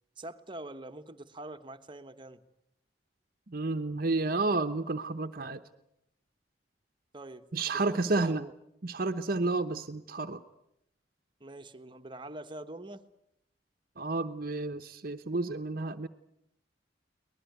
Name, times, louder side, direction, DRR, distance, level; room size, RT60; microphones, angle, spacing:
voice 1, 0.2-2.4 7.1-8.5 11.4-13.0, right 1 dB, 30° right, 8 dB, 1.3 m, -44 dB
voice 2, 3.5-5.6 7.5-8.4 8.8-10.4 14.0-16.1, right 3 dB, 55° right, 8 dB, 0.9 m, -31 dB
23.5 x 20.0 x 9.4 m, 0.77 s
head